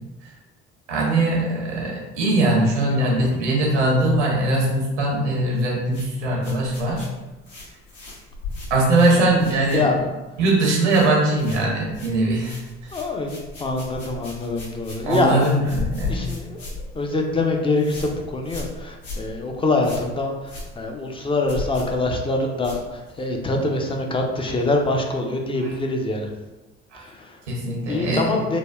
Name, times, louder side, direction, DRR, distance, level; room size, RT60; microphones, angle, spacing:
voice 1, 0.9-7.0 8.7-9.9 10.4-12.6 15.0-16.2 25.6-25.7 26.9-27.1 27.5-28.4, right 2 dB, 80° right, -2 dB, 0.8 m, -21 dB
voice 2, 2.8-3.3 9.1-9.2 9.7-10.0 12.9-15.5 16.1-16.6 16.9-26.3 27.2-27.3 27.9-28.6, left 2 dB, 15° left, 2 dB, 0.4 m, -24 dB
sound 1, 5.9-10.2 10.5-11.1 11.4-23.3, left 3 dB, 65° left, 1.0 m, -36 dB
3.3 x 2.1 x 2.3 m, 1.1 s
figure-of-eight pair, 55°, 35 cm